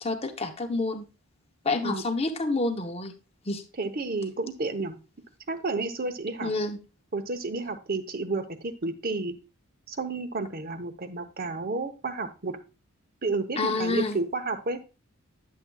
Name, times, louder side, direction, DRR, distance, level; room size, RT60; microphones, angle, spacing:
voice 1, 0.0-1.1 1.6-3.1 3.5-3.6 6.4-6.8 13.6-14.2, left 2 dB, 25° left, 6 dB, 0.8 m, -28 dB
voice 2, 3.8-5.0 5.5-6.5 7.1-9.3 9.9-12.6 13.2-14.8, right 3 dB, 40° right, 9 dB, 0.8 m, -31 dB
10.5 x 7.3 x 2.3 m, 0.31 s
head